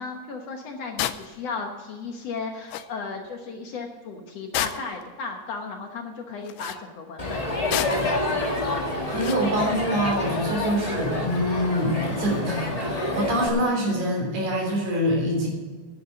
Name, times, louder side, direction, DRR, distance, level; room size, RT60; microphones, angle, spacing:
voice 1, 0.0-8.6, left 4 dB, 60° left, 3 dB, 2.0 m, -35 dB
sound 1, 1.0-1.3 2.4-2.5 2.7-2.9 4.5-5.0 6.5-6.8 7.7-8.1 9.2-9.5, left 13 dB, 90° left, 2.3 m, -29 dB
Crowd, 7.2-13.5, left 2 dB, 30° left, 0.7 m, -28 dB
voice 2, 9.0-15.5, equal, 65° right, 0 dB, 4.8 m, -25 dB
10.5 x 10.0 x 6.9 m, 1.4 s
omnidirectional pair, 3.7 m